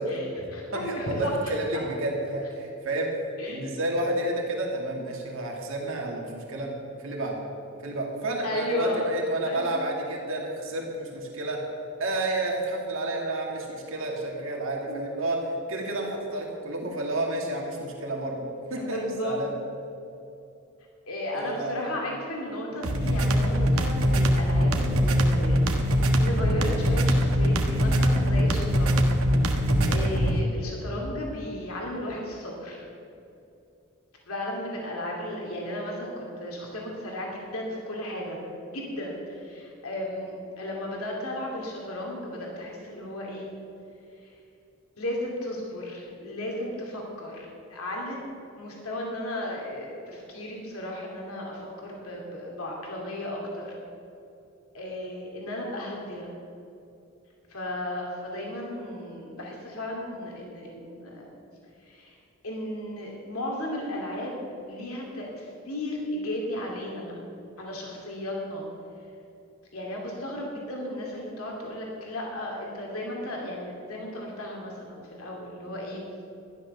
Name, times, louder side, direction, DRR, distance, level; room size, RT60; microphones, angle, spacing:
voice 1, 0.1-1.3 3.4-3.7 8.4-9.1 9.4-9.8 14.9-15.1 18.7-19.4 21.0-29.1 29.4-32.9 34.3-38.4 38.7-43.5 44.2-44.3 45.0-48.2 48.5-53.8 54.7-56.3 57.5-61.4 61.8-62.2 62.4-64.4 64.7-67.1 67.6-68.7 69.7-76.0, left 1 dB, 85° left, -1 dB, 2.7 m, -34 dB
voice 2, 0.7-3.1 3.5-7.4 7.8-11.6 12.0-15.4 15.7-19.5 21.3-21.9, right 1 dB, 65° right, -1 dB, 2.2 m, -30 dB
sound 1, 22.8-30.4, equal, 85° right, 1.4 m, -22 dB
13.0 x 11.0 x 6.7 m, 2.7 s
head